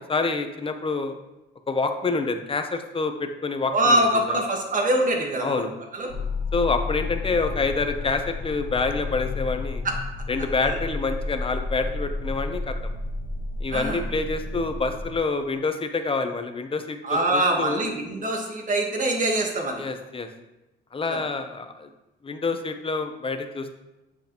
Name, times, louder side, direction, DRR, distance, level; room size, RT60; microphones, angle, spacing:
voice 1, 0.1-1.1 1.7-4.0 4.3-4.4 5.4-5.7 6.5-9.8 10.3-12.7 13.6-17.8 19.8-20.3 20.9-21.9 22.2-23.7, left 3 dB, 25° left, 7 dB, 0.8 m, -27 dB
voice 2, 3.7-5.6 5.9-6.1 9.8-9.9 10.6-10.8 13.7-14.0 17.0-19.8 21.1-21.2, right 1 dB, 40° right, 2 dB, 1.5 m, -24 dB
sound 1, 6.1-15.2, left 3 dB, 75° left, 0.9 m, -31 dB
8.3 x 5.1 x 3.0 m, 0.97 s
cardioid pair, 90°, 20 cm